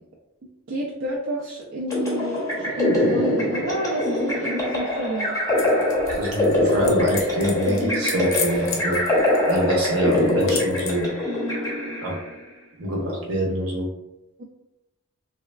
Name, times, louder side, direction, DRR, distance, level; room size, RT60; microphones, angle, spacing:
voice 1, 0.7-5.3 14.4-14.5, equal, 55° right, -4 dB, 0.4 m, -29 dB
sound 1, 1.9-12.3, left 1 dB, 15° left, 0.6 m, -23 dB
sound 2, 5.6-11.1, left 5 dB, 60° left, 0.5 m, -35 dB
voice 2, 6.1-9.1 9.5-11.1 12.0-12.1 12.8-13.9, equal, 75° right, -3 dB, 0.9 m, -25 dB
3.3 x 2.2 x 2.2 m, 0.94 s
head